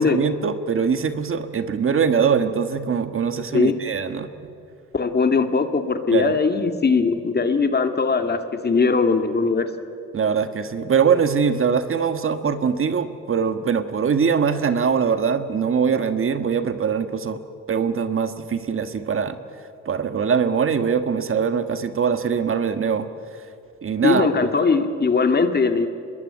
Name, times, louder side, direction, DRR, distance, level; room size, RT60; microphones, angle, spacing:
voice 1, 0.0-4.3 6.1-6.4 10.1-17.4 17.7-19.4 19.8-23.1 23.8-24.5, right 6 dB, 45° right, 9 dB, 1.6 m, -22 dB
voice 2, 4.9-9.7 24.0-25.9, left 4 dB, 35° left, 7 dB, 2.1 m, -20 dB
25.0 x 21.5 x 9.0 m, 2.4 s
cardioid pair, 90°, 30 cm